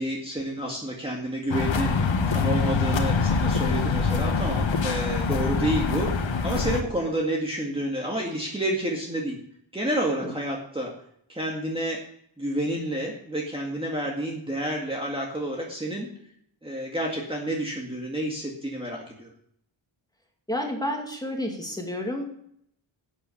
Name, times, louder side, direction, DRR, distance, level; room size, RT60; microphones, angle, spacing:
voice 1, 0.0-1.9 2.3-6.1 6.4-9.4 9.7-10.9 11.3-12.0 12.4-16.1 16.6-19.3, right 1 dB, 10° right, -2 dB, 1.9 m, -29 dB
sound 1, 1.5-6.8, left 4 dB, 70° left, 1.6 m, -24 dB
voice 2, 20.5-22.3, left 1 dB, 10° left, 1 dB, 2.5 m, -30 dB
12.0 x 8.6 x 7.1 m, 0.69 s
wide cardioid pair, 150°, 47 cm